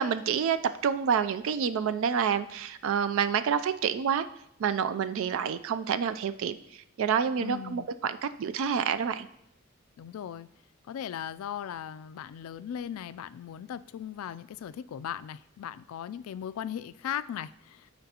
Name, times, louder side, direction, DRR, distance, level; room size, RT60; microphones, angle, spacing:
voice 1, 0.0-4.3 4.6-6.6 7.0-9.3, right 7 dB, 65° right, 12 dB, 0.3 m, -28 dB
voice 2, 7.4-7.9 10.0-10.5 10.9-17.9, left 9 dB, 75° left, 15 dB, 0.3 m, -38 dB
13.0 x 4.4 x 2.8 m, 0.78 s
head